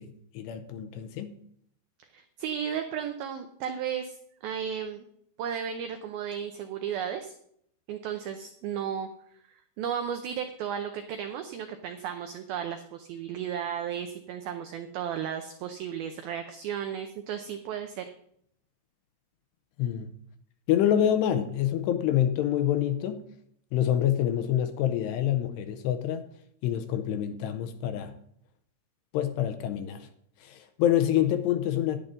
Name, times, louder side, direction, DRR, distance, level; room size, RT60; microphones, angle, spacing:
voice 1, 0.0-1.4 19.8-20.1 20.7-23.3 23.7-26.3 26.6-28.1 29.1-30.1 30.4-32.0, left 11 dB, 80° left, 2.7 m, -27 dB
voice 2, 2.1-4.2 4.4-5.1 5.4-7.4 7.9-9.1 9.5-18.1, right 8 dB, 90° right, 2.1 m, -34 dB
11.0 x 10.5 x 3.8 m
omnidirectional pair, 5.3 m